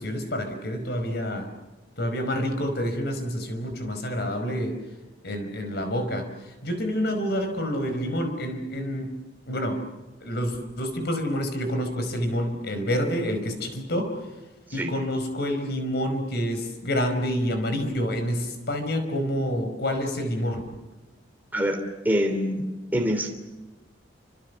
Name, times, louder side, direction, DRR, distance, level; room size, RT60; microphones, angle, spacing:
voice 1, 0.0-1.5 2.0-4.8 5.2-9.2 9.5-9.8 10.2-14.3 14.7-20.8, equal, 60° left, 7 dB, 5.1 m, -28 dB
voice 2, 22.0-22.6 22.9-23.3, equal, 10° right, 2 dB, 3.0 m, -24 dB
29.5 x 27.0 x 7.0 m, 1.1 s
head